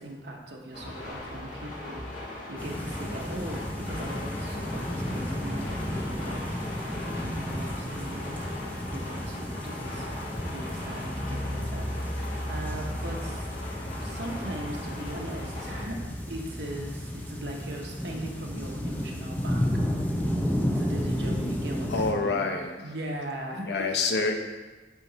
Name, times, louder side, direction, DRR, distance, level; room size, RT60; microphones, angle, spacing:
voice 1, 0.0-6.6 7.0-8.4 8.9-10.0 10.3-13.5 14.0-16.0 16.3-19.8 20.7-22.5 22.8-23.9, right 1 dB, 70° right, 0 dB, 0.9 m, -39 dB
sound 1, 0.7-15.8, left 2 dB, 45° left, 1.5 m, -39 dB
sound 2, 2.6-22.1, equal, 10° left, 0.6 m, -33 dB
sound 3, 11.1-22.0, equal, 10° right, 1.8 m, -40 dB
voice 2, 21.9-22.7 23.6-24.3, left 3 dB, 70° left, 3 dB, 0.7 m, -26 dB
8.5 x 3.1 x 3.9 m, 1.3 s
head